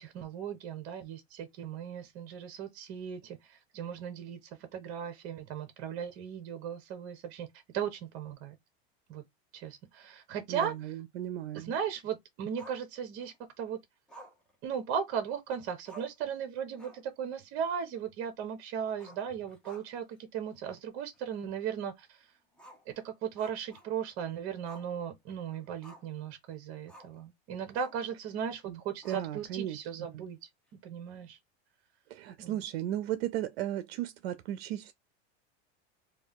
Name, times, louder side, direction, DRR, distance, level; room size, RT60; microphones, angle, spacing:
voice 1, 0.0-7.5 7.7-8.6 9.1-9.2 9.5-10.9 11.5-13.8 14.6-22.3 22.9-30.4 30.8-31.4 32.4-32.6, right 8 dB, 45° right, 1.0 m, -37 dB
voice 2, 10.5-11.7 28.7-29.8 30.1-30.2 32.1-34.9, right 12 dB, 70° right, 0.5 m, -36 dB
Growling, 12.6-13.4 14.1-15.3 15.6-15.7 15.9-16.3 16.7-17.2 17.5-17.6 18.9-20.1 20.5-20.6 21.1-21.2 22.5-24.2 24.6-24.9 25.3-26.2 26.9-27.2 27.7-28.1 29.0-29.6, right 1 dB, 5° left, 0.8 m, -53 dB
3.4 x 2.4 x 3.4 m
supercardioid pair, 145°, 32 cm